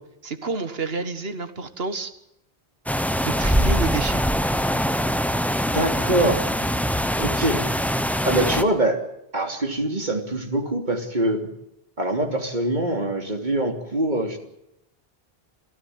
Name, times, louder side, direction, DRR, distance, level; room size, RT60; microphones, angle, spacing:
voice 1, 0.2-2.1 3.2-4.2, right 4 dB, 75° right, 10 dB, 1.8 m, -29 dB
sound 1, 2.9-8.6, equal, ahead, 0.9 m, -23 dB
voice 2, 5.7-6.5 7.2-7.7 8.2-9.0 9.3-11.5 12.0-14.4, right 1 dB, 50° right, 4 dB, 3.3 m, -24 dB
28.0 x 14.5 x 9.5 m, 0.80 s
omnidirectional pair, 1.0 m